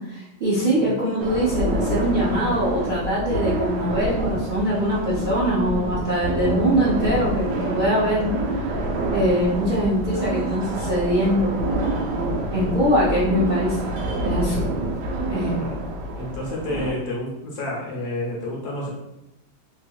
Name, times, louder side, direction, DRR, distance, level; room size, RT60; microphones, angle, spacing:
voice 1, 0.1-8.3 8.7-8.8 9.1-11.6 12.5-13.8 14.2-14.6 15.2-15.5, equal, 90° right, -8 dB, 0.4 m, -22 dB
voice 2, 0.6-1.0 15.5-15.7 16.1-18.9, left 1 dB, 65° left, -3 dB, 1.2 m, -30 dB
sound 1, 1.2-16.9, right 1 dB, 70° right, 1.0 m, -27 dB
3.3 x 3.2 x 2.3 m, 0.87 s
omnidirectional pair, 2.1 m